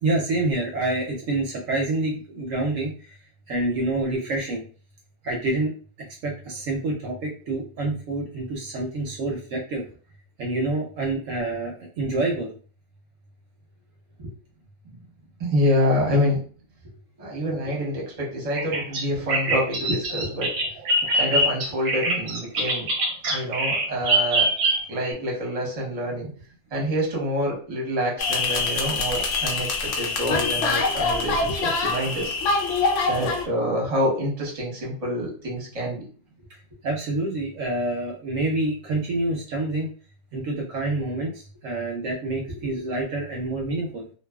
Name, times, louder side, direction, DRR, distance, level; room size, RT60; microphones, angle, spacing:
voice 1, 0.0-3.2 3.5-4.6 5.2-5.7 6.1-9.8 10.4-12.5 36.8-39.9 40.3-44.0, right 2 dB, 70° right, 0 dB, 0.9 m, -27 dB
voice 2, 15.4-16.4 17.2-20.5 21.1-22.9 23.3-24.5 24.9-26.3 26.7-32.4 33.1-36.0 42.5-42.6, equal, 30° right, -2 dB, 0.9 m, -26 dB
Bird vocalization bird call bird song, 18.5-25.1, right 1 dB, 90° right, 1.2 m, -24 dB
sound 1, 28.2-33.5, left 3 dB, 65° left, 0.8 m, -24 dB
2.7 x 2.3 x 2.2 m, 0.41 s
omnidirectional pair, 1.5 m